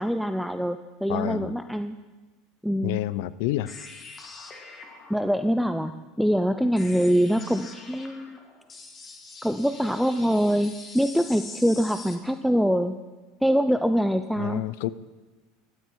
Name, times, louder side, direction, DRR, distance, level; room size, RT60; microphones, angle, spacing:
voice 1, 0.0-2.0 2.6-3.0 5.1-8.4 9.4-13.0 13.4-14.7, equal, ahead, 9 dB, 0.5 m, -24 dB
voice 2, 1.1-1.5 2.8-3.7 14.4-14.9, left 15 dB, 75° left, 18 dB, 0.5 m, -29 dB
sound 1, 3.7-12.2, left 4 dB, 30° left, 2.0 m, -44 dB
15.0 x 12.5 x 4.7 m, 1.2 s
supercardioid pair, 115°, 0 cm